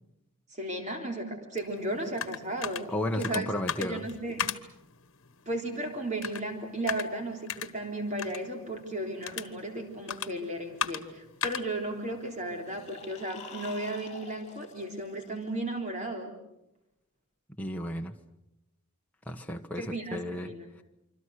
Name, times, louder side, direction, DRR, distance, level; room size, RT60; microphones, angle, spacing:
voice 1, 0.5-3.5 3.8-4.5 5.5-16.3 19.8-20.7, right 1 dB, 35° right, 3 dB, 3.6 m, -35 dB
sound 1, 1.6-13.2, left 8 dB, 70° left, 1.3 m, -39 dB
voice 2, 2.9-4.0 17.6-18.1 19.3-20.5, left 1 dB, 5° left, 2 dB, 1.3 m, -33 dB
sound 2, 12.6-15.7, left 5 dB, 30° left, 4.4 m, -48 dB
27.0 x 25.5 x 6.6 m, 0.87 s
head